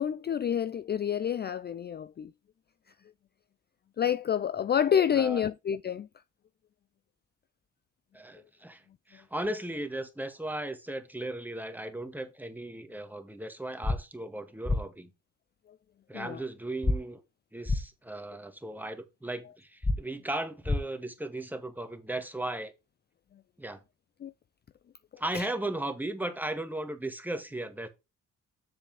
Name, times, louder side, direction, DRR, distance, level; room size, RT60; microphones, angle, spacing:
voice 1, 0.0-2.3 4.0-6.1 16.1-16.4 24.2-24.3 25.3-25.5, left 8 dB, 35° left, 0.4 m, -28 dB
voice 2, 5.2-5.5 8.1-15.1 16.1-17.2 17.5-22.7 23.6-23.8 25.2-27.9, right 1 dB, 5° right, 1.8 m, -36 dB
sound 1, 13.8-14.0 14.7-14.8 16.8-17.0 17.7-17.8 19.8-20.0 20.7-20.8, left 2 dB, 15° left, 0.9 m, -26 dB
7.7 x 6.7 x 3.5 m
cardioid pair, 90°, 30 cm